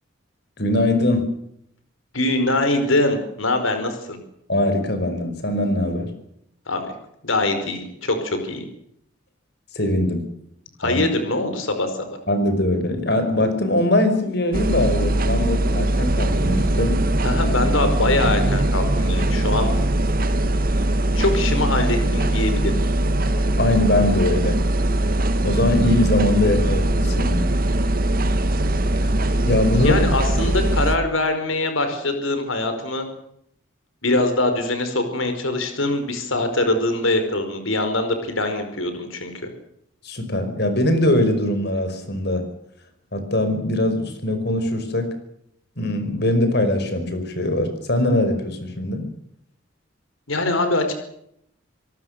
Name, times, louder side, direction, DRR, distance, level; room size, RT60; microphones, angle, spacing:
voice 1, 0.6-1.3 4.5-6.1 9.7-10.2 10.8-11.0 12.3-17.0 23.4-24.6 25.4-27.5 29.5-30.0 40.0-42.5 43.1-45.1 45.8-49.1, left 1 dB, 55° left, 8 dB, 5.3 m, -21 dB
voice 2, 2.1-4.2 6.7-6.9 7.2-8.6 10.8-12.2 17.2-19.7 20.8-22.8 29.8-33.0 34.0-39.3 50.3-50.9, left 2 dB, 85° left, 7 dB, 5.0 m, -23 dB
sound 1, 14.5-31.0, right 1 dB, 45° right, 1.7 m, -21 dB
27.5 x 18.5 x 6.7 m, 0.73 s
head